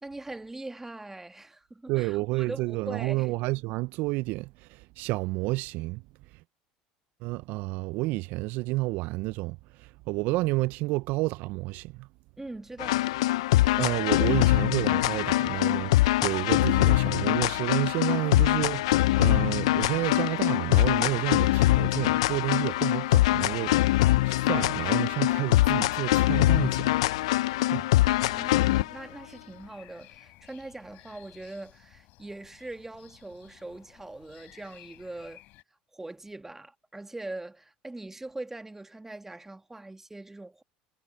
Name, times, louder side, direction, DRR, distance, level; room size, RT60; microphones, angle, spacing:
voice 1, 0.0-3.3 12.4-13.1 28.2-35.4 35.9-40.6, right 2 dB, 10° right, 1.7 m, -42 dB
voice 2, 1.9-6.0 7.2-12.1 13.7-27.0 27.6-27.8, right 21 dB, 65° right, 0.4 m, -30 dB
sound 1, 12.8-28.9, left 17 dB, 80° left, 0.4 m, -23 dB
sound 2, 22.2-35.6, left 19 dB, 65° left, 3.6 m, -56 dB
hypercardioid pair, 75°, 3 cm